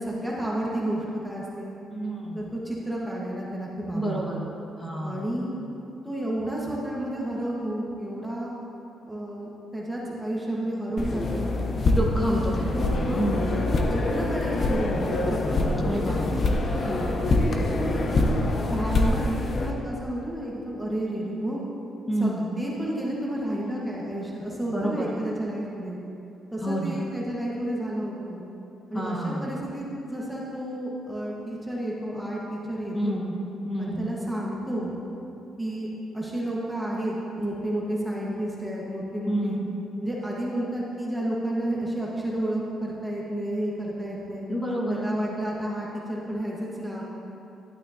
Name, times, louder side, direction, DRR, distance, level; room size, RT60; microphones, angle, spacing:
voice 1, 0.0-1.7 2.3-4.4 5.0-5.6 6.0-8.6 9.1-11.5 12.2-15.7 16.8-17.1 17.5-19.2 19.6-21.6 22.2-26.0 26.5-28.4 28.9-33.2 33.8-34.9 35.6-35.9 36.1-39.6 40.0-44.5 44.9-47.0, right 1 dB, 5° right, -5 dB, 1.5 m, -31 dB
voice 2, 1.9-2.5 3.9-4.4 4.8-5.2 11.8-12.8 13.2-13.5 15.8-16.4 22.1-22.4 24.7-25.1 26.6-27.0 28.9-29.5 32.9-33.4 33.6-34.1 39.3-39.6 44.5-45.1, right 1 dB, 20° left, -3 dB, 1.6 m, -29 dB
sound 1, 11.0-19.7, left 2 dB, 45° left, 0.9 m, -25 dB
12.0 x 9.0 x 2.9 m, 2.8 s
cardioid pair, 90°, 0 cm